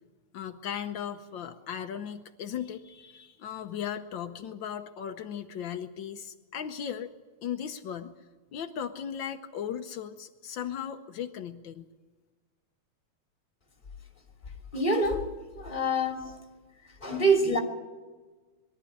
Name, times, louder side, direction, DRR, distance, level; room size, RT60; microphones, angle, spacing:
voice 1, 0.3-7.1 7.4-8.1 8.5-11.9, left 9 dB, 85° left, 1.0 m, -37 dB
voice 2, 14.7-15.3 15.6-16.3 17.0-17.6, right 2 dB, 15° left, 2.8 m, -25 dB
22.5 x 13.0 x 10.0 m
omnidirectional pair, 3.3 m